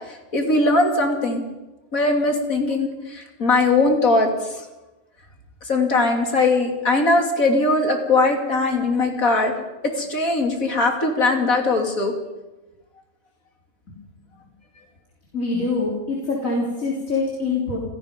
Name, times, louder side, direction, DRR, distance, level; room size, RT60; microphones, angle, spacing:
voice 1, 0.1-1.4 1.9-4.6 5.6-9.5 10.0-12.1, left 2 dB, 90° left, 2 dB, 3.4 m, -20 dB
voice 2, 15.3-17.8, left 3 dB, 70° left, -2 dB, 4.0 m, -24 dB
29.0 x 17.0 x 5.3 m, 1.1 s
omnidirectional pair, 1.4 m